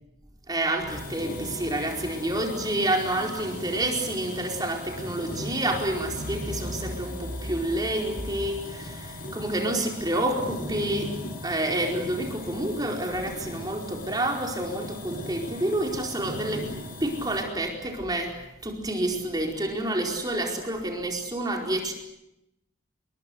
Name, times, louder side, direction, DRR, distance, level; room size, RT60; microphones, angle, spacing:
voice 1, 0.5-11.2 11.4-16.7 17.0-21.9, right 1 dB, 20° right, 2 dB, 4.7 m, -29 dB
sound 1, 0.8-8.6, equal, 40° right, 5.6 m, -41 dB
sound 2, 0.9-17.4, left 1 dB, 45° left, 6.6 m, -39 dB
29.0 x 22.5 x 8.1 m, 0.85 s
head